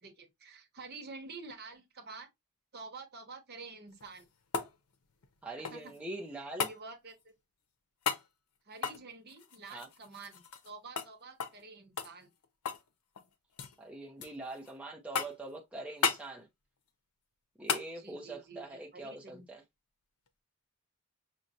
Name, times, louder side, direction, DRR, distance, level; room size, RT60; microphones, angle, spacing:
voice 1, 0.0-2.3 2.7-4.3 5.7-5.9 6.3-7.2 8.7-12.3 17.9-19.5, right 4 dB, 45° right, 0.9 m, -49 dB
sound 1, 3.9-6.0 6.6-6.8 8.0-8.3 8.7-10.7 11.0-11.1 11.4-11.6 12.0-12.9 13.1-13.8 14.2-14.7 15.1-15.5 16.0-16.3 17.7-17.9 20.3-20.4, left 6 dB, 85° left, 0.6 m, -35 dB
voice 2, 5.4-6.7 9.7-9.9 13.8-16.5 17.6-19.6, right 2 dB, 5° right, 0.6 m, -43 dB
6.1 x 2.1 x 2.7 m
head